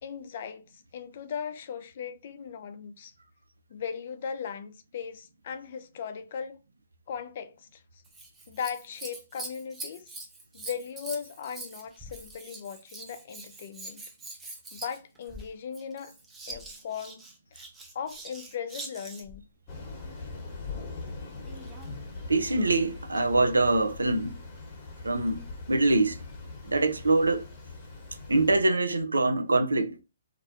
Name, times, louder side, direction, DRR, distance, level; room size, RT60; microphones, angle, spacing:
voice 1, 0.0-3.1 3.7-6.6 7.1-8.0 8.5-10.1 10.5-14.0 14.7-16.1 16.5-17.2 17.5-17.7 17.9-19.4, left 7 dB, 50° left, 0.4 m, -38 dB
Scissors, 8.0-19.4 21.4-22.0 22.7-22.8, right 2 dB, 10° right, 0.5 m, -44 dB
Thunder / Rain, 19.7-28.6, left 3 dB, 30° left, 1.0 m, -42 dB
voice 2, 22.3-24.4 25.0-25.4 25.7-26.2 26.6-27.5 28.3-30.0, right 2 dB, 80° right, 0.4 m, -24 dB
2.5 x 2.1 x 2.6 m
figure-of-eight pair, 130°, 0 cm